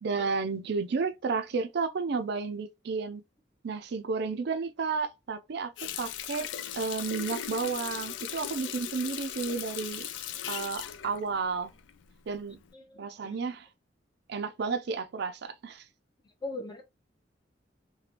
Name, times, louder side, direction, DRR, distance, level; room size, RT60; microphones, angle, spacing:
voice 1, 0.0-3.2 3.6-5.7 6.0-6.5 6.7-10.1 10.5-11.7 12.3-12.6 13.0-13.7 14.3-15.9, right 4 dB, 65° right, 0.4 m, -32 dB
Water tap faucet, 5.8-12.1 12.5-12.7, left 10 dB, 90° left, 0.4 m, -38 dB
voice 2, 12.7-13.4 16.4-16.8, left 2 dB, 25° left, 0.7 m, -40 dB
3.3 x 2.2 x 2.9 m
head